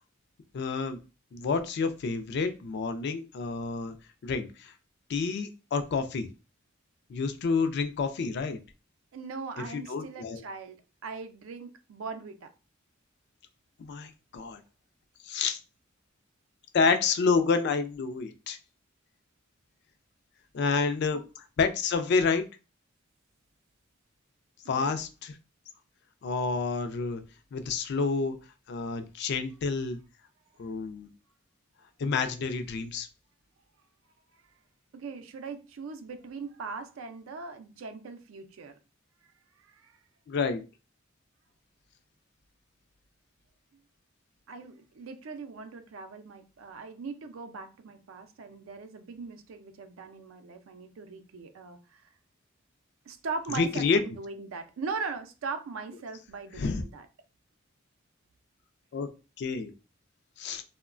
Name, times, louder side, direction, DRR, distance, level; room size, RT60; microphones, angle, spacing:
voice 1, 0.5-1.0 1.3-3.9 4.2-4.7 5.1-6.3 7.1-8.6 9.6-10.4 13.8-14.6 15.3-15.6 16.7-18.6 20.5-21.2 21.6-22.5 24.7-25.3 26.2-27.2 27.5-28.4 28.7-30.0 30.6-31.1 32.0-33.1 40.3-40.6 53.5-54.0 56.6-56.8 58.9-59.1 59.4-59.7 60.4-60.6, left 4 dB, 55° left, 0.3 m, -29 dB
voice 2, 9.1-10.8 11.0-12.5 24.6-25.0 34.9-38.7 39.6-40.0 43.7-43.8 44.5-52.1 53.1-57.1, right 4 dB, 85° right, 0.4 m, -40 dB
2.9 x 2.1 x 2.4 m
head